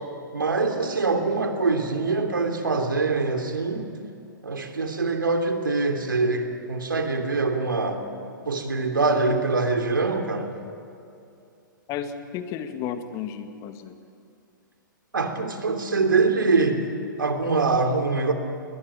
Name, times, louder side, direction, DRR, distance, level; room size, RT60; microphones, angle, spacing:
voice 1, 0.3-3.9 4.4-8.0 8.5-10.5 15.1-16.8 17.2-18.3, right 3 dB, 80° right, 5 dB, 3.0 m, -24 dB
voice 2, 11.9-14.0, left 8 dB, 30° left, 8 dB, 1.9 m, -33 dB
20.5 x 20.5 x 9.0 m, 2.6 s
figure-of-eight pair, 115°, 11 cm